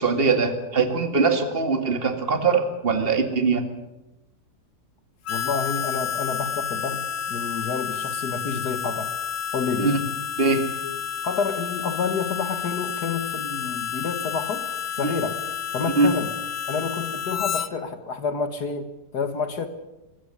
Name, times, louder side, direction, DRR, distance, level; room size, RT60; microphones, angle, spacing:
voice 1, 0.0-3.6 9.8-10.0 10.4-10.7 15.0-15.1 16.0-16.1, right 4 dB, 35° right, 7 dB, 2.3 m, -22 dB
voice 2, 5.3-9.1 9.5-10.0 11.2-14.7 15.0-15.4 15.7-16.3 16.7-19.7, left 5 dB, 70° left, 10 dB, 2.1 m, -29 dB
Harmonica, 5.3-17.7, left 8 dB, 55° left, 1.3 m, -30 dB
24.0 x 15.0 x 10.0 m, 1.0 s
omnidirectional pair, 1.8 m